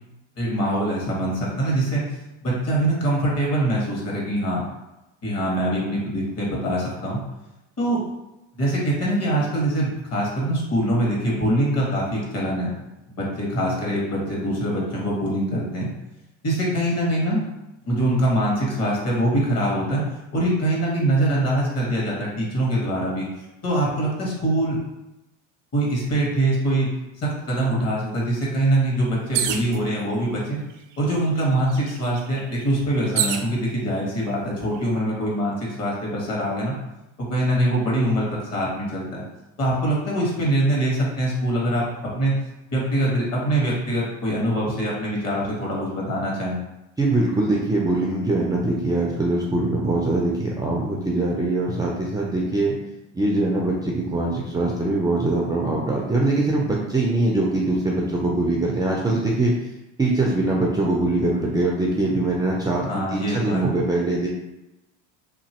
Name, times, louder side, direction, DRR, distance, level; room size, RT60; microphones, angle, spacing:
voice 1, 0.4-2.0 2.4-4.7 5.2-7.2 7.8-8.0 8.6-12.7 13.1-15.9 16.4-17.4 17.8-20.0 20.3-23.3 23.6-24.8 25.7-26.9 27.2-30.6 31.0-36.7 37.2-38.3 38.5-39.2 39.6-42.3 42.7-46.6 62.9-63.7, right 1 dB, 40° left, -3 dB, 1.5 m, -23 dB
sound 1, 29.3-29.8 30.7-30.8 31.1-33.5 34.3-34.8, right 9 dB, 80° right, 0.5 m, -27 dB
voice 2, 47.0-52.8 53.1-59.5 60.0-64.3, right 2 dB, 10° right, -3 dB, 0.4 m, -22 dB
2.9 x 2.7 x 2.9 m, 0.96 s
supercardioid pair, 95°, 37 cm